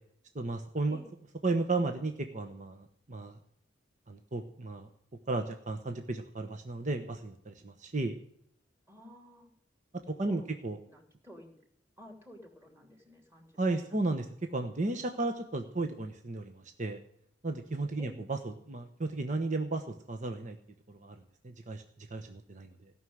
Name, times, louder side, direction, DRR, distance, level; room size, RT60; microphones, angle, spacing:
voice 1, 0.3-1.0 1.4-3.4 4.1-4.9 5.3-8.1 10.2-10.8 13.6-17.0 17.4-20.6 20.9-22.9, right 2 dB, 40° right, 5 dB, 1.1 m, -34 dB
voice 2, 8.9-9.5 10.2-10.5 10.9-11.5 12.0-13.5 13.7-13.8 14.1-14.2 18.0-18.1, left 1 dB, 15° right, 2 dB, 3.0 m, -52 dB
16.5 x 6.3 x 9.4 m, 0.71 s
head